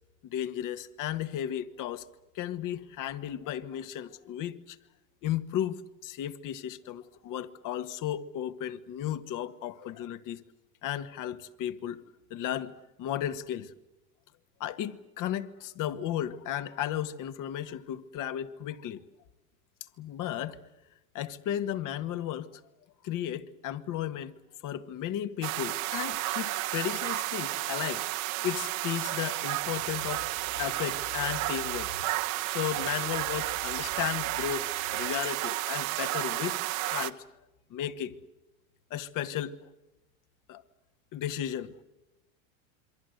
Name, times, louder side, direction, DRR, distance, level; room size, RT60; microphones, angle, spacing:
voice 1, 0.2-2.0 2.4-4.8 5.2-10.4 10.8-12.0 12.3-12.7 13.0-13.7 14.6-19.0 20.0-20.6 21.1-22.5 23.0-24.3 24.6-30.3 30.6-32.1 32.5-37.2 37.7-38.1 38.9-39.6 40.5-40.6 41.1-41.8, left 11 dB, 45° left, 1.9 m, -34 dB
sound 1, 25.4-37.1, right 18 dB, 70° right, 1.5 m, -32 dB
28.0 x 23.5 x 8.1 m
supercardioid pair, 110°, 42 cm